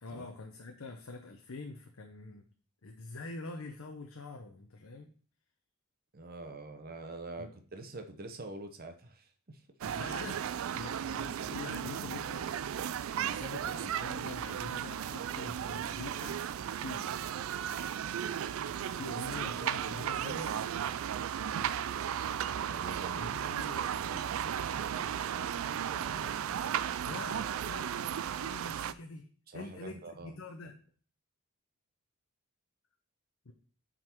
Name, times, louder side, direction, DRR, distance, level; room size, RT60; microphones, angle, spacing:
voice 1, 0.0-2.5 2.8-5.1 7.4-7.5 9.8-12.6 13.2-16.4 16.8-17.1 18.9-20.6 23.2-23.9 27.0-30.7 33.5-33.6, left 3 dB, 65° left, 4 dB, 0.7 m, -45 dB
voice 2, 6.1-9.6 10.7-10.8 19.4-20.2 20.8-20.9 22.6-23.3 23.6-26.7 29.5-30.4, right 2 dB, 40° right, 6 dB, 0.9 m, -46 dB
sound 1, 9.8-28.9, right 9 dB, 65° right, 0.3 m, -35 dB
7.6 x 3.9 x 4.5 m, 0.43 s
head